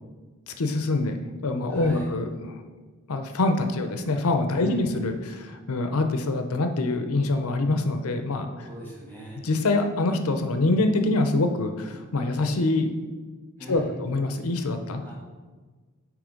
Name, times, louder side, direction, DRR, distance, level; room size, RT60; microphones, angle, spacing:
voice 1, 0.5-1.2 1.4-2.5 3.1-8.7 9.4-12.9 13.7-15.0, left 2 dB, 75° left, 6 dB, 0.7 m, -25 dB
voice 2, 1.7-2.1 4.6-4.9 8.6-9.4 13.6-14.0 15.0-15.1, right 1 dB, 10° right, -5 dB, 1.2 m, -40 dB
8.4 x 3.2 x 5.2 m, 1.4 s
head